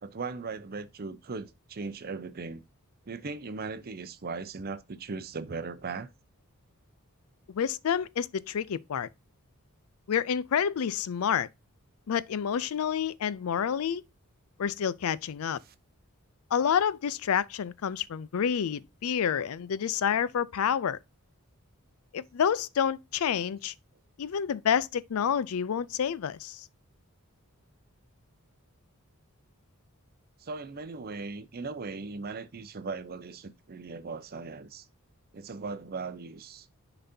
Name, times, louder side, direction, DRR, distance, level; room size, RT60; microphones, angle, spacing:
voice 1, 0.0-2.6 3.0-6.1 15.6-15.7 30.4-34.9 35.3-36.7, right 4 dB, 45° right, 0.6 m, -38 dB
voice 2, 7.5-9.1 10.1-11.5 12.1-14.0 14.6-15.6 16.5-21.0 22.1-23.7 24.2-26.7, left 8 dB, 70° left, 0.4 m, -28 dB
10.0 x 4.0 x 2.7 m
head